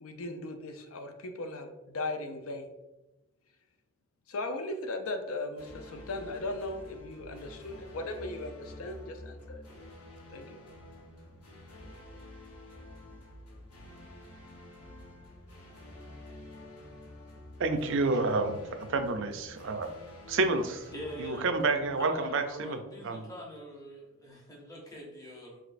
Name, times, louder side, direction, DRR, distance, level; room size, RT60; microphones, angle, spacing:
voice 1, 0.0-2.7 4.3-9.6 10.3-10.6, left 2 dB, 70° left, 6 dB, 0.5 m, -38 dB
sound 1, 5.6-22.6, left 1 dB, 85° left, 1.0 m, -49 dB
voice 2, 17.6-19.9 20.3-20.9 21.2-23.3, right 3 dB, 55° right, 7 dB, 0.4 m, -29 dB
voice 3, 20.9-21.5 22.0-25.6, left 1 dB, 15° left, -2 dB, 0.8 m, -44 dB
5.0 x 3.2 x 2.5 m, 1.0 s
head